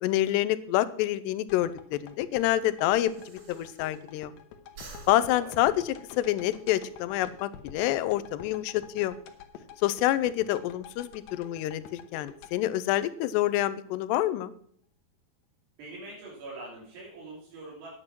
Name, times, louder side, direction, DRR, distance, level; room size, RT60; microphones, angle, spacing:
voice 1, 0.0-4.3 5.1-9.2 9.8-14.5, left 14 dB, 90° left, 15 dB, 2.8 m, -27 dB
sound 1, 1.5-13.7 14.1-14.2, left 7 dB, 75° left, 2.5 m, -48 dB
Breathing, 1.8-4.3 4.6-6.6, right 3 dB, 55° right, 1.7 m, -51 dB
voice 2, 15.8-17.9, right 2 dB, 75° right, -7 dB, 5.4 m, -43 dB
9.7 x 9.1 x 6.0 m, 0.63 s
omnidirectional pair, 4.8 m